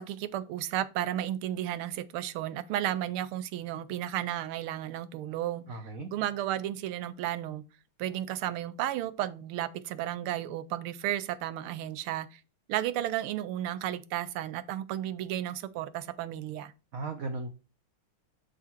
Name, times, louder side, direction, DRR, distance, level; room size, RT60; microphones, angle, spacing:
voice 1, 0.0-5.6 6.1-7.6 8.0-12.4 12.7-16.7, right 12 dB, 80° right, 1.5 m, -33 dB
voice 2, 5.7-6.1 16.9-17.5, right 3 dB, 60° right, 0.9 m, -36 dB
6.5 x 5.1 x 4.4 m
omnidirectional pair, 2.4 m